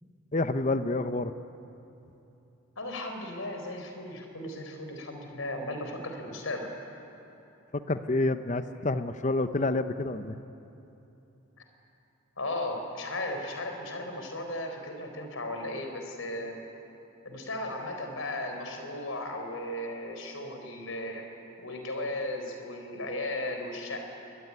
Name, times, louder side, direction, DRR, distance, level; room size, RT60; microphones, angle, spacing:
voice 1, 0.3-1.3 7.7-10.4, left 2 dB, 35° left, 10 dB, 0.7 m, -28 dB
voice 2, 2.8-6.7 11.6-11.7 12.4-16.6 17.2-21.3 21.6-24.1, left 1 dB, 80° left, 4 dB, 4.1 m, -36 dB
23.5 x 21.5 x 9.8 m, 2.9 s
head